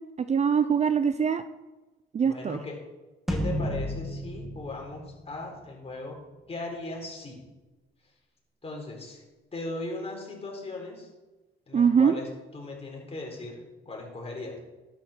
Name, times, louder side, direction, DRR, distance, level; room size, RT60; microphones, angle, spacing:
voice 1, 0.2-1.4 2.1-2.6 11.7-12.1, right 7 dB, 35° right, 12 dB, 0.5 m, -23 dB
voice 2, 2.2-2.8 3.3-7.4 8.6-9.2 9.5-11.1 11.7-14.6, left 2 dB, 30° left, -1 dB, 4.4 m, -38 dB
sound 1, 3.3-5.8, equal, ahead, 2.1 m, -32 dB
12.0 x 9.8 x 4.5 m, 1.1 s
cardioid pair, 90°, 20 cm